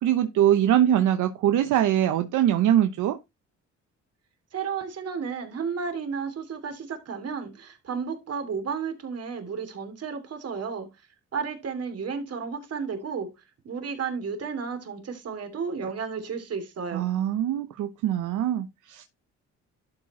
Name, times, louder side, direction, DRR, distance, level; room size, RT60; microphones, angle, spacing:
voice 1, 0.0-3.2 16.9-19.0, right 11 dB, 80° right, 0.9 m, -23 dB
voice 2, 4.5-10.9 11.3-13.3 13.6-17.0, right 5 dB, 55° right, 2.9 m, -32 dB
12.0 x 4.8 x 4.2 m
cardioid pair, 90°, 30 cm